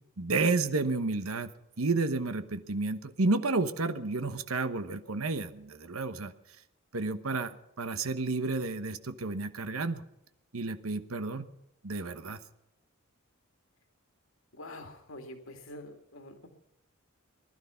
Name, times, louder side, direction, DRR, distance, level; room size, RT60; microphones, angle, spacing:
voice 1, 0.2-1.5 1.8-6.3 6.9-10.0 10.5-11.5 11.8-12.4, right 3 dB, 80° right, 10 dB, 1.1 m, -31 dB
voice 2, 14.5-16.5, left 1 dB, 70° left, 5 dB, 2.3 m, -46 dB
20.5 x 12.0 x 5.7 m, 0.85 s
head